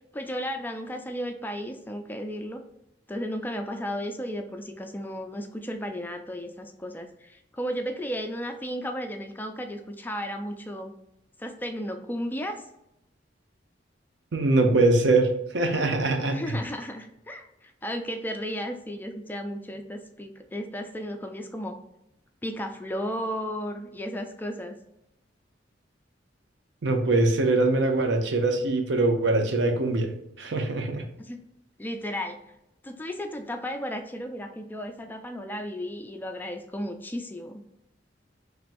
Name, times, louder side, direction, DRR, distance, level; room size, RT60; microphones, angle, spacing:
voice 1, 0.1-2.6 3.1-10.9 11.4-12.7 16.3-21.8 22.4-24.7 31.2-31.4 31.8-32.4 32.8-37.6, equal, 10° left, 5 dB, 0.4 m, -34 dB
voice 2, 14.3-16.6 26.8-30.1 30.4-31.0, right 2 dB, 70° right, 5 dB, 0.7 m, -23 dB
4.6 x 3.3 x 2.5 m, 0.83 s
head